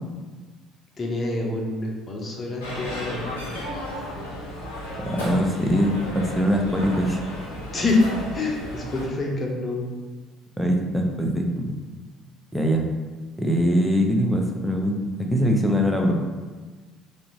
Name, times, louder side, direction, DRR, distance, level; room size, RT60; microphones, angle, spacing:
voice 1, 1.0-3.2 7.7-8.0 8.3-9.8, left 2 dB, 35° left, -1 dB, 0.8 m, -26 dB
sound 1, 2.6-9.1, left 1 dB, 80° left, 0.7 m, -34 dB
voice 2, 5.0-7.2 10.6-11.8 12.5-12.9 13.4-16.1, equal, ahead, 1 dB, 0.6 m, -22 dB
3.4 x 2.6 x 3.0 m, 1.3 s
figure-of-eight pair, 55°, 0 cm